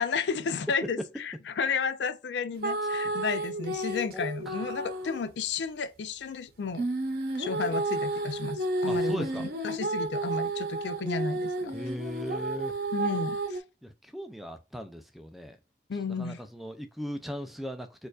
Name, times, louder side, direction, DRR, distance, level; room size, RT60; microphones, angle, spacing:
voice 1, 0.0-6.9 7.3-11.7 12.9-13.6 15.9-16.4, left 5 dB, 85° left, 0.4 m, -32 dB
sound 1, 2.6-5.3 6.7-13.6, right 2 dB, 60° right, 0.7 m, -31 dB
voice 2, 4.1-4.9 8.9-9.4 11.7-12.7 13.8-15.6 16.2-18.1, equal, ahead, 0.3 m, -38 dB
4.4 x 2.4 x 2.3 m
head